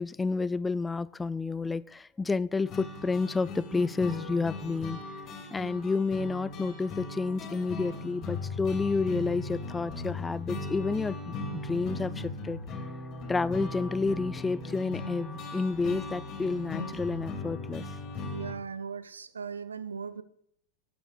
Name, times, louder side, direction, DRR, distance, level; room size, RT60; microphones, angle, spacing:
voice 1, 0.0-5.0 5.5-12.6 13.3-17.9, left 4 dB, 10° left, 19 dB, 0.3 m, -30 dB
sound 1, 2.7-18.5, left 2 dB, 35° left, 2.5 m, -38 dB
voice 2, 18.3-20.2, right 6 dB, 70° right, 14 dB, 0.7 m, -38 dB
16.0 x 12.0 x 2.4 m, 0.69 s
figure-of-eight pair, 90°, 0 cm